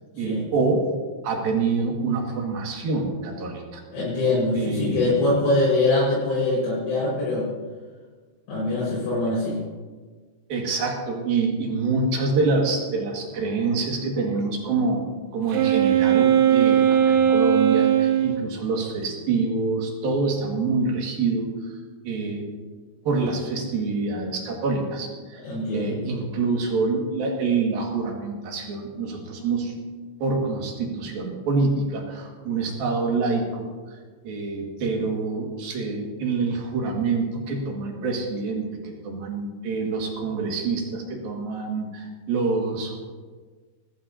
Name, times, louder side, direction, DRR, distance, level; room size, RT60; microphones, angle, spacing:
voice 1, 0.1-0.9 1.2-3.8 4.5-5.2 10.5-21.5 22.0-22.4 23.0-25.4 25.7-29.7 30.2-33.7 34.2-43.0, right 4 dB, 55° right, 0 dB, 3.4 m, -26 dB
voice 2, 3.9-7.5 8.5-9.6 25.4-26.0, left 2 dB, 75° left, -9 dB, 7.8 m, -23 dB
Wind instrument woodwind instrument, 15.5-18.4, right 9 dB, 75° right, 3.3 m, -18 dB
20.5 x 15.0 x 2.8 m, 1.4 s
omnidirectional pair, 5.5 m